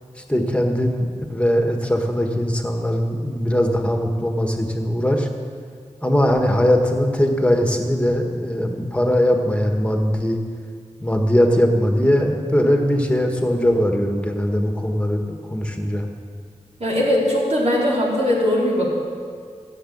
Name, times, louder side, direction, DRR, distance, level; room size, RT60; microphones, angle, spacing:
voice 1, 0.3-5.3 6.0-10.4 11.0-16.0, equal, 10° left, 3 dB, 1.7 m, -20 dB
voice 2, 16.8-18.9, left 1 dB, 60° right, -5 dB, 4.2 m, -20 dB
15.0 x 7.4 x 8.7 m, 2.1 s
wide cardioid pair, 75°, 13 cm